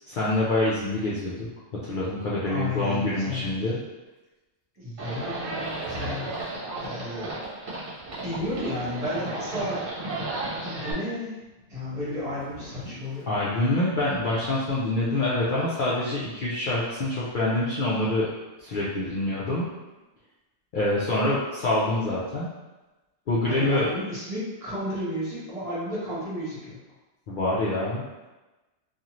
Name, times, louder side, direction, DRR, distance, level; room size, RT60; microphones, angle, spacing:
voice 1, 0.1-1.5 1.7-3.8 13.3-18.3 18.6-19.7 20.7-22.5 23.3-23.9 27.3-28.0, left 2 dB, 60° left, -7 dB, 0.6 m, -26 dB
voice 2, 2.5-3.6 4.8-7.3 8.2-10.0 10.5-11.4 11.7-13.3 23.4-26.8, left 1 dB, 30° right, -10 dB, 1.1 m, -33 dB
Livestock farm animals working animals, 5.0-10.9, right 2 dB, 55° right, 1.0 m, -34 dB
sound 1, 5.6-6.7 8.0-9.6 11.4-13.3, equal, 35° left, 1.0 m, -44 dB
2.6 x 2.4 x 2.9 m, 1.1 s
omnidirectional pair, 1.2 m